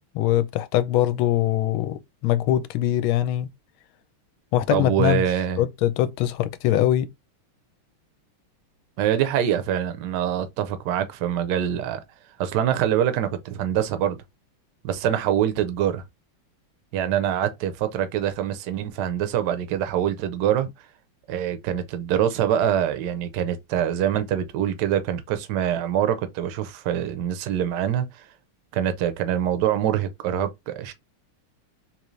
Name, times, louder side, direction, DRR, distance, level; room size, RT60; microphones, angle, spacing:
voice 1, 0.1-3.5 4.5-5.2 5.6-7.1, left 12 dB, 80° left, 1.3 m, -22 dB
voice 2, 4.7-5.6 9.0-12.0 12.4-14.2 14.8-16.0 16.9-20.7 21.3-28.1 28.7-30.9, right 10 dB, 65° right, 1.1 m, -24 dB
4.0 x 3.0 x 3.1 m
omnidirectional pair, 2.4 m